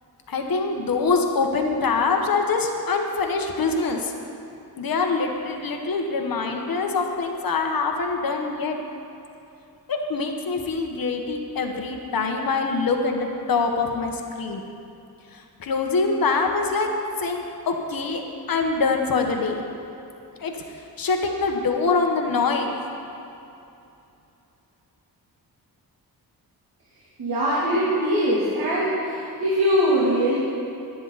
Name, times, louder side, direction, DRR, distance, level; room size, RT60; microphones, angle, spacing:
voice 1, 0.3-4.1 4.8-8.8 9.9-14.6 15.3-16.9 17.2-18.2 18.5-19.6 20.4-20.6 21.0-22.7, left 4 dB, 65° left, 3 dB, 1.2 m, -24 dB
voice 2, 27.2-30.4, equal, 80° right, -8 dB, 2.9 m, -22 dB
21.5 x 9.3 x 4.1 m, 2.7 s
wide cardioid pair, 165°, 38 cm